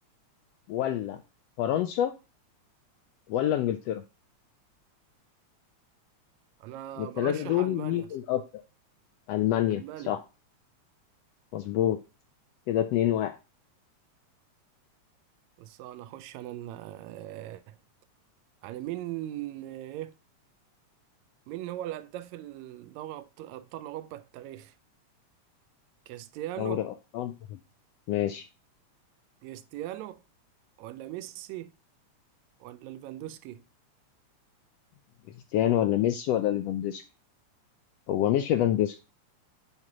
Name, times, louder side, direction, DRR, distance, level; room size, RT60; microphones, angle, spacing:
voice 1, 0.7-1.2 1.6-2.1 3.3-4.0 7.0-8.4 9.3-10.2 11.5-12.0 12.7-13.4 26.6-27.6 28.1-28.5 35.5-37.0 38.1-39.0, left 12 dB, 85° left, 1.4 m, -27 dB
voice 2, 6.6-8.1 9.7-10.2 15.6-17.8 18.6-20.1 21.5-24.8 26.1-26.9 29.4-30.2 30.8-31.7 32.6-33.6, right 13 dB, 80° right, 1.8 m, -39 dB
7.8 x 2.9 x 6.0 m
omnidirectional pair, 3.4 m